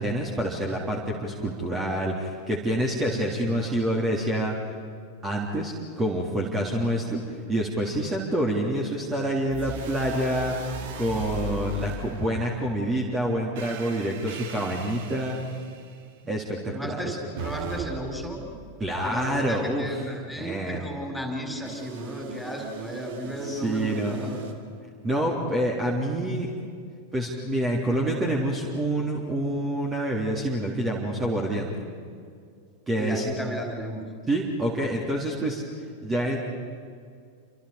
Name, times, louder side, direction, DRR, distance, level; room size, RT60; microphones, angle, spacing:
voice 1, 0.0-4.5 5.2-7.2 7.5-10.5 10.9-15.4 16.3-17.2 18.8-19.9 20.3-20.9 23.4-24.1 25.0-26.5 27.1-31.8 32.9-33.2 34.3-35.6 36.0-36.4, right 1 dB, 20° right, -1 dB, 3.5 m, -27 dB
sound 1, 9.5-12.8 13.6-16.1 17.4-19.4 21.6-24.5, right 4 dB, 55° right, 2.5 m, -38 dB
voice 2, 16.7-18.4 19.0-24.5 25.4-25.5 33.0-34.0 34.8-34.9, equal, 5° left, 3 dB, 4.8 m, -34 dB
29.5 x 27.0 x 5.1 m, 2.2 s
figure-of-eight pair, 90°, 0 cm